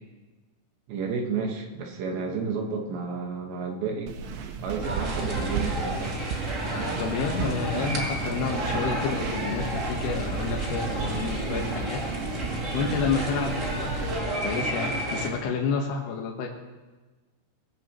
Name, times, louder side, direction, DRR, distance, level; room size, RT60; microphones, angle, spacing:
voice 1, 0.9-4.1 4.6-6.0, right 5 dB, 70° right, 1 dB, 3.5 m, -31 dB
sound 1, 4.1-14.2, right 6 dB, 90° right, 3.7 m, -35 dB
sound 2, 4.8-15.3, right 1 dB, 35° right, 1.1 m, -31 dB
voice 2, 7.0-12.0 12.7-16.5, left 5 dB, 70° left, 0 dB, 3.0 m, -30 dB
21.0 x 16.0 x 3.0 m, 1.2 s
omnidirectional pair, 5.5 m